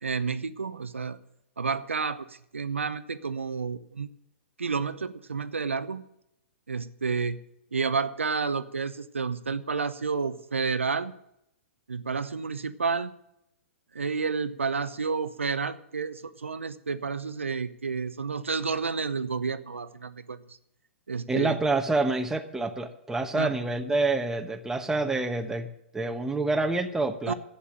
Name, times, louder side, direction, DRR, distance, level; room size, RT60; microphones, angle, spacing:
voice 1, 0.0-1.2 1.6-4.1 4.6-6.0 6.7-7.4 7.7-11.1 11.9-13.1 13.9-20.6 21.1-21.6 23.3-23.6 27.3-27.4, right 5 dB, 80° right, 12 dB, 0.8 m, -30 dB
voice 2, 21.3-25.7 25.9-27.3, right 3 dB, 5° right, 6 dB, 1.1 m, -27 dB
11.5 x 8.3 x 8.9 m, 0.81 s
figure-of-eight pair, 115°, 7 cm